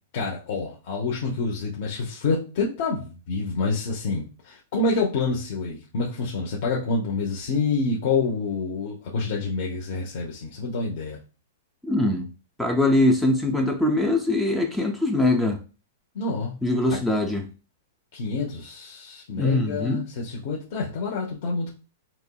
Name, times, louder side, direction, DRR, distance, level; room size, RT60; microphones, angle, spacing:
voice 1, 0.1-11.2 16.1-16.6 18.1-21.7, left 3 dB, 50° left, -2 dB, 0.7 m, -27 dB
voice 2, 11.8-12.3 12.6-15.6 16.6-17.5 19.4-20.0, left 2 dB, 5° left, 3 dB, 0.3 m, -22 dB
4.2 x 2.9 x 2.3 m, 0.34 s
supercardioid pair, 165°, 0 cm